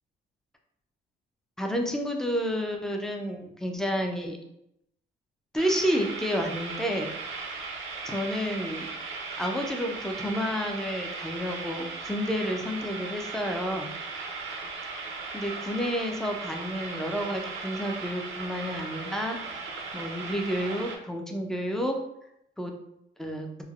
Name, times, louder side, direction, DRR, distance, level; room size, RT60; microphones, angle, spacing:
voice 1, 1.6-4.4 5.5-7.1 8.0-8.9 9.4-13.9 15.3-19.4 19.9-22.0 22.6-22.7 23.2-23.5, equal, ahead, 2 dB, 0.4 m, -30 dB
sound 1, 5.6-21.0, right 4 dB, 85° right, 0.5 m, -37 dB
3.2 x 2.1 x 2.3 m, 0.78 s
cardioid pair, 90°, 20 cm